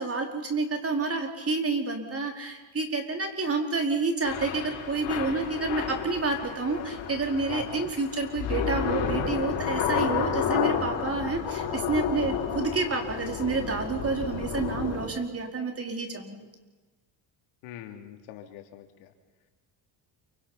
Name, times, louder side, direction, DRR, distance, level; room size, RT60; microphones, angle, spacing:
voice 1, 0.0-16.5, right 3 dB, 30° right, 3 dB, 4.5 m, -29 dB
Thunder / Rain, 4.2-15.1, left 7 dB, 75° left, 6.7 m, -31 dB
voice 2, 7.5-7.9 17.6-19.1, left 11 dB, 90° left, 4 dB, 3.2 m, -42 dB
28.5 x 25.5 x 5.8 m, 1.2 s
cardioid pair, 110°, 48 cm